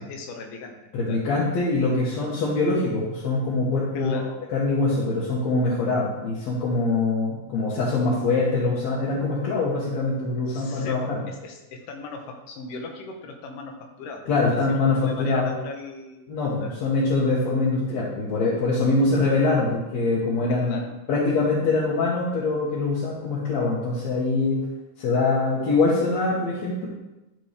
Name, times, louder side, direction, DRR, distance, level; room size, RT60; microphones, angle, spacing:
voice 1, 0.0-0.8 1.0-1.3 3.9-4.4 10.5-16.3 16.6-16.8 20.5-20.9, left 3 dB, 85° left, 3 dB, 2.5 m, -38 dB
voice 2, 0.9-4.2 4.5-11.2 14.3-15.5 16.3-20.8 21.1-24.6 25.0-26.9, left 3 dB, 65° left, -6 dB, 2.3 m, -23 dB
12.5 x 4.4 x 3.3 m, 1.0 s
omnidirectional pair, 3.6 m